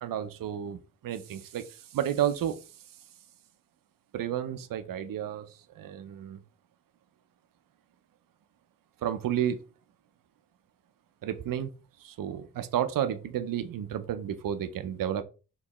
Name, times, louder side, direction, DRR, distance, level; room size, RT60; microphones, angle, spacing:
voice 1, 0.0-2.6 4.1-6.4 9.0-9.7 11.2-11.7 12.0-15.2, right 10 dB, 85° right, 0.6 m, -32 dB
4.4 x 3.1 x 2.9 m
wide cardioid pair, 175°, 32 cm